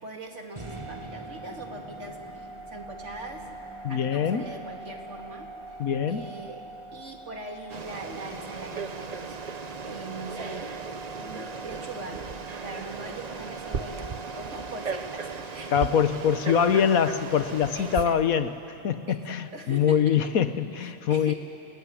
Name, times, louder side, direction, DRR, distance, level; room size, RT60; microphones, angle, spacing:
voice 1, 0.0-3.5 3.9-5.8 6.1-6.6 6.9-10.8 11.1-12.3 12.6-14.1 14.4-15.7 16.0-16.2 17.7-18.2 19.1-20.0 20.8-21.4, right 2 dB, 55° right, 2 dB, 2.8 m, -41 dB
sound 1, 0.6-16.7, right 2 dB, 20° right, 1.9 m, -44 dB
voice 2, 3.8-4.4 5.8-6.3 15.7-18.5 18.8-21.3, left 8 dB, 80° left, 11 dB, 1.4 m, -24 dB
Frog, 7.7-18.1, right 5 dB, 35° right, 0.7 m, -36 dB
29.0 x 20.0 x 10.0 m, 2.8 s
omnidirectional pair, 1.5 m